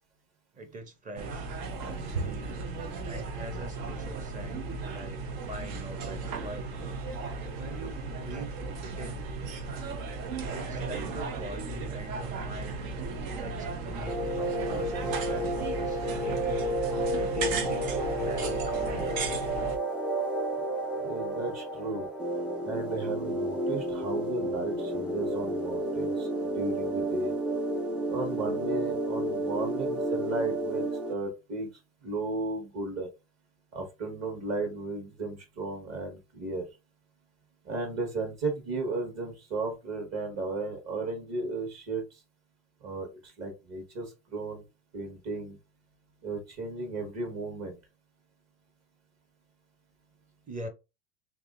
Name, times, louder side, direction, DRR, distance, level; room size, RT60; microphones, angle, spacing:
voice 1, 0.5-1.5 2.1-2.6 3.0-6.7 7.6-8.5 8.8-9.3 10.5-12.8 13.3-16.5 17.1-19.5 50.5-50.7, right 2 dB, 20° right, 0.7 m, -43 dB
sound 1, 1.2-19.8, right 4 dB, 75° right, 1.0 m, -36 dB
sound 2, 14.1-31.1, right 1 dB, 5° right, 0.3 m, -31 dB
voice 2, 21.0-22.1 22.6-26.3 26.5-27.4 28.1-31.7 32.0-33.1 33.7-36.6 37.6-42.0 42.8-44.6 44.9-45.6 46.2-47.8, right 3 dB, 40° right, 1.4 m, -34 dB
3.5 x 2.9 x 2.5 m
supercardioid pair, 125°, 40 cm